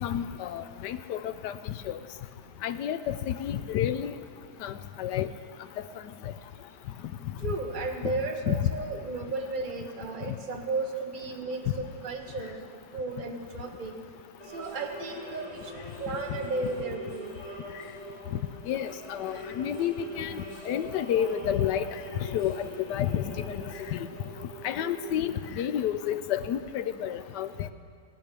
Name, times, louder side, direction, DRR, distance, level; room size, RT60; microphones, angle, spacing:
voice 1, 0.0-1.5 1.9-2.0 2.6-4.1 4.6-5.3 8.0-8.1 8.5-8.7 18.7-21.9 22.3-23.6 23.9-24.0 24.6-27.7, left 10 dB, 85° left, 12 dB, 1.3 m, -30 dB
voice 2, 7.4-12.6 12.9-14.0 14.5-17.3, right 3 dB, 30° right, 3 dB, 1.2 m, -34 dB
sound 1, 14.4-25.2, equal, 20° left, 4.8 m, -43 dB
19.0 x 9.1 x 6.8 m, 2.1 s
omnidirectional pair, 1.8 m